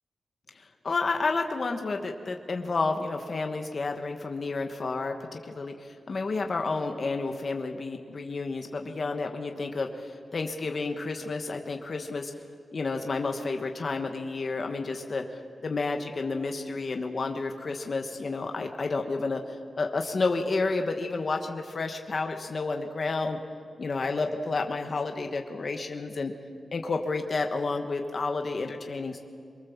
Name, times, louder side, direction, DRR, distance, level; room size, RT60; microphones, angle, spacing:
voice 1, 0.8-12.3 12.7-19.4 19.8-23.4 23.8-26.3 26.7-29.2, left 3 dB, 40° left, 4 dB, 1.3 m, -30 dB
24.0 x 22.5 x 7.2 m, 2.2 s
wide cardioid pair, 175°, 0 cm